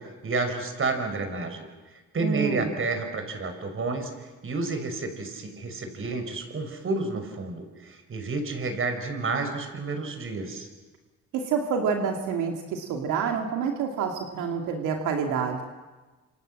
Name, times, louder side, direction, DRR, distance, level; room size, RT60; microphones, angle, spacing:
voice 1, 0.2-1.7 2.1-10.7, right 3 dB, 45° right, 7 dB, 5.8 m, -30 dB
voice 2, 2.2-2.7 11.3-15.7, right 6 dB, 90° right, 3 dB, 2.5 m, -28 dB
27.5 x 26.5 x 7.7 m, 1.2 s
cardioid pair, 90°, 30 cm